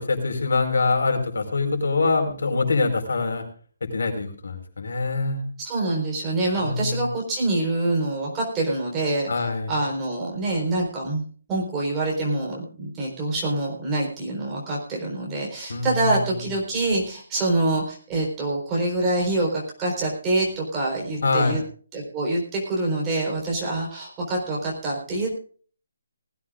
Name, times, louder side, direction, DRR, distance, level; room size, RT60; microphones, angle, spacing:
voice 1, 0.1-3.4 3.8-5.4 6.6-7.1 9.3-9.8 15.7-16.5 21.2-21.6, left 3 dB, 75° left, 6 dB, 4.8 m, -24 dB
voice 2, 5.6-21.6 21.9-25.3, right 2 dB, 10° right, -3 dB, 4.3 m, -26 dB
19.5 x 15.5 x 2.5 m, 0.43 s
hypercardioid pair, 175°, 0 cm